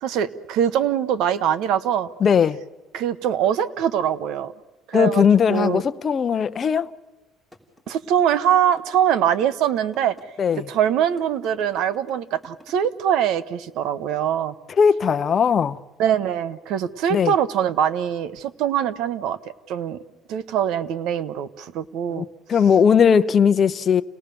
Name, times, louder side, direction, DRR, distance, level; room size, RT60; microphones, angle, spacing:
voice 1, 0.0-2.1 2.9-4.5 4.9-5.8 7.9-10.1 10.6-14.5 16.0-19.4 19.7-20.0 20.3-22.2, right 9 dB, 75° right, 1.1 m, -23 dB
voice 2, 2.2-2.6 4.9-6.9 10.4-10.7 14.8-15.8 17.1-17.3 22.1-24.0, left 7 dB, 35° left, 0.7 m, -18 dB
sound 1, 7.5-12.9, left 1 dB, 5° right, 3.1 m, -48 dB
30.0 x 18.5 x 6.9 m
cardioid pair, 125°, 0 cm